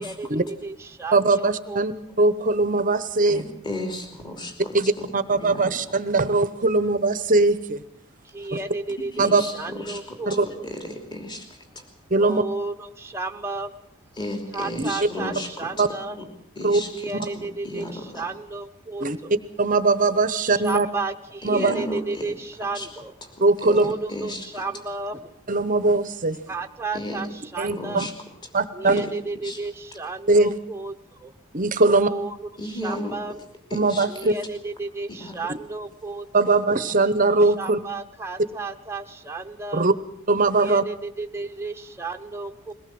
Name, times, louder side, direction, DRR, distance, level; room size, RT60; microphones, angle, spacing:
voice 1, 0.0-1.8 8.2-10.6 12.2-13.7 14.5-16.2 16.9-19.3 20.4-23.1 23.7-25.4 26.5-28.1 28.7-31.3 31.8-33.4 34.1-36.5 37.2-39.9 40.6-42.7, right 3 dB, 10° right, 4 dB, 0.9 m, -33 dB
voice 2, 1.1-3.4 4.7-7.8 8.5-8.6 9.2-9.4 10.3-10.5 12.1-12.4 14.8-14.9 15.8-15.9 16.6-16.8 17.1-17.3 19.0-19.2 19.6-20.9 21.4-21.7 23.4-23.9 25.5-26.4 27.6-28.1 28.5-29.0 30.3-30.6 31.5-32.1 33.7-34.3 36.3-37.8 39.7-39.9 40.3-40.8, right 3 dB, 35° right, 13 dB, 0.9 m, -20 dB
voice 3, 3.3-5.6 8.4-8.5 9.1-11.5 11.7-11.8 14.2-15.7 16.1-16.2 16.6-18.2 21.5-22.3 22.7-22.9 23.6-23.8 24.1-24.4 26.9-27.2 27.7-28.1 29.4-29.6 32.6-33.2 33.7-34.3 35.1-35.4, left 1 dB, 20° left, 4 dB, 2.9 m, -34 dB
22.0 x 18.0 x 7.7 m, 0.72 s
head